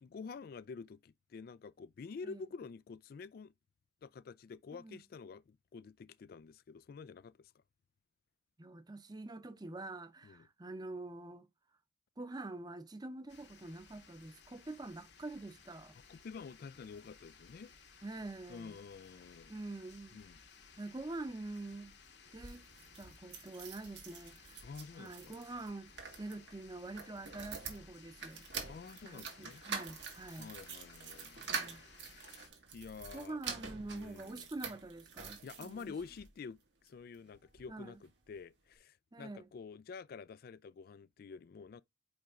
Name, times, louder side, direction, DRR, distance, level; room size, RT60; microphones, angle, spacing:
voice 1, 0.0-3.5 4.0-7.6 10.2-10.5 16.1-17.7 18.5-19.5 20.1-20.4 23.0-23.2 24.6-25.4 28.7-29.6 30.4-31.7 32.2-32.4 32.7-33.4 33.9-34.5 35.4-41.8, left 5 dB, 55° left, 0.3 m, -49 dB
voice 2, 8.6-11.5 12.2-16.0 18.0-18.8 19.5-20.2 20.7-22.0 22.3-22.6 23.0-24.6 24.9-25.9 26.2-28.4 29.0-30.5 31.5-31.8 33.1-35.9 37.7-37.9 39.1-39.5, right 2 dB, 25° right, 0.7 m, -46 dB
sound 1, 13.3-32.5, left 5 dB, 75° left, 1.5 m, -59 dB
sound 2, 22.3-36.3 36.9-37.7 38.0-38.1 38.3-38.4, right 5 dB, 85° right, 1.9 m, -46 dB
5.2 x 5.0 x 3.6 m
head